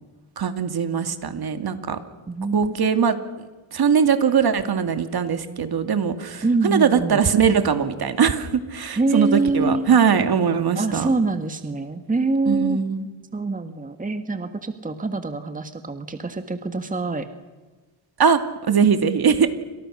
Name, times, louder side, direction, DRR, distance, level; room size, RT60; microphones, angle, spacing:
voice 1, 0.4-2.0 2.5-3.2 3.7-11.1 12.5-13.1 18.2-19.5, right 7 dB, 50° right, 8 dB, 2.6 m, -21 dB
voice 2, 2.3-2.7 6.4-7.2 8.9-9.9 10.7-12.8 13.3-17.3, right 3 dB, 15° right, 8 dB, 1.7 m, -25 dB
29.0 x 26.5 x 6.6 m, 1.3 s
cardioid pair, 105°, 46 cm